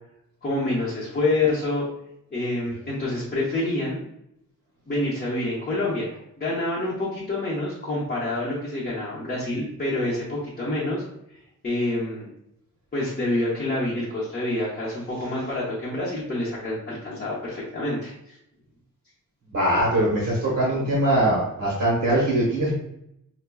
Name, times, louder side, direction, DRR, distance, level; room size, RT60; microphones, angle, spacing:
voice 1, 0.4-1.9 2.3-4.0 4.9-6.1 6.4-11.0 11.3-11.4 11.6-12.3 12.9-18.4, left 2 dB, 30° left, -8 dB, 0.9 m, -27 dB
voice 2, 19.5-22.7, right 1 dB, 50° right, -4 dB, 1.0 m, -22 dB
5.7 x 2.2 x 2.3 m, 0.79 s
wide cardioid pair, 150°, 32 cm